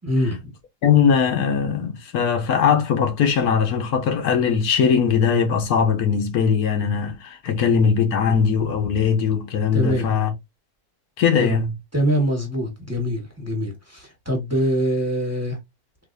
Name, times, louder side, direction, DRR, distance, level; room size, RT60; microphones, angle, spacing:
voice 1, 0.1-0.5 9.7-10.1 11.4-11.6 11.9-15.6, equal, 10° right, 1.2 m, -24 dB
voice 2, 0.8-10.3 11.2-11.7, left 7 dB, 85° left, 1.4 m, -20 dB
3.9 x 2.9 x 2.6 m
omnidirectional pair, 1.5 m